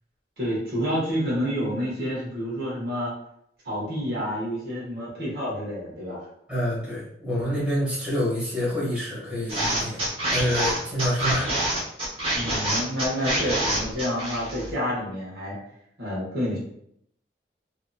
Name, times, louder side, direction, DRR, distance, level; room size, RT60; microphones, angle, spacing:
voice 1, 0.4-3.1 3.6-6.2 12.3-15.6 16.0-16.6, equal, 60° right, -7 dB, 1.2 m, -29 dB
voice 2, 6.5-10.0 10.3-11.7, equal, 5° right, -10 dB, 1.3 m, -27 dB
sound 1, 9.5-14.7, right 1 dB, 30° right, 0.8 m, -26 dB
2.8 x 2.6 x 2.3 m, 0.73 s
head